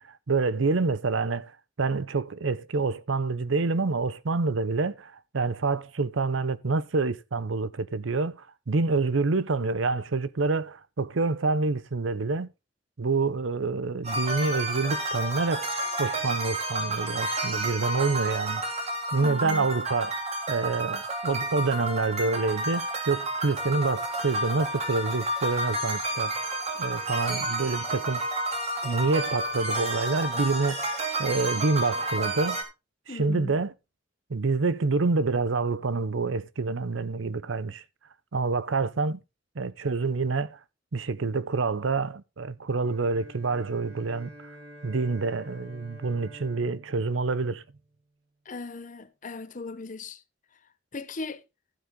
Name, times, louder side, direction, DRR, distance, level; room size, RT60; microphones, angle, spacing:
voice 1, 0.3-1.5 1.8-12.5 13.0-15.7 16.0-18.6 19.1-20.2 20.5-28.2 28.8-32.6 33.1-33.7 34.3-37.8 38.3-39.2 39.6-40.6 40.9-44.3 44.8-47.6, right 3 dB, 90° right, 0.7 m, -27 dB
sound 1, 14.0-32.6, right 1 dB, 35° right, 2.6 m, -31 dB
voice 2, 19.2-19.7 33.1-33.6 48.5-50.2 50.9-51.4, left 3 dB, 45° left, 0.9 m, -37 dB
Bowed string instrument, 42.8-48.2, right 1 dB, 50° right, 3.3 m, -49 dB
12.5 x 8.1 x 3.7 m
head